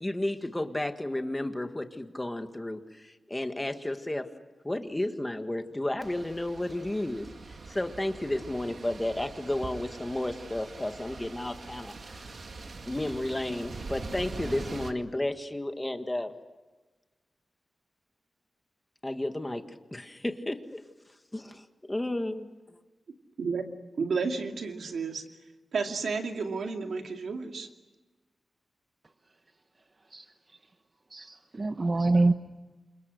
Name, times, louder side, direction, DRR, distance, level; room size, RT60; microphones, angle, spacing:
voice 1, 0.0-4.3 4.6-7.3 7.7-12.2 12.9-16.3 19.0-19.6 19.9-20.8 21.3-22.5, left 1 dB, 15° left, 1.7 m, -32 dB
sound 1, 6.0-14.9, right 3 dB, 55° right, 2.1 m, -43 dB
voice 2, 24.0-25.2 25.7-27.7, right 4 dB, 80° right, 2.6 m, -31 dB
voice 3, 31.1-32.3, right 2 dB, 30° right, 0.9 m, -25 dB
29.0 x 26.5 x 6.6 m
wide cardioid pair, 130°, 0 cm